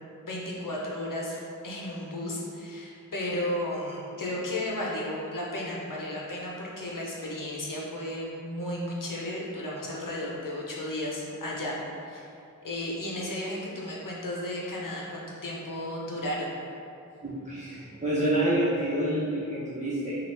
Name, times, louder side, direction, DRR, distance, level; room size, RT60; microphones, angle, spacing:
voice 1, 0.2-11.8 12.1-12.3 12.6-16.6, left 1 dB, 80° left, -3 dB, 0.9 m, -34 dB
voice 2, 17.2-20.2, right 1 dB, 20° right, -11 dB, 1.0 m, -28 dB
5.8 x 2.5 x 3.3 m, 2.6 s
wide cardioid pair, 65°, 32 cm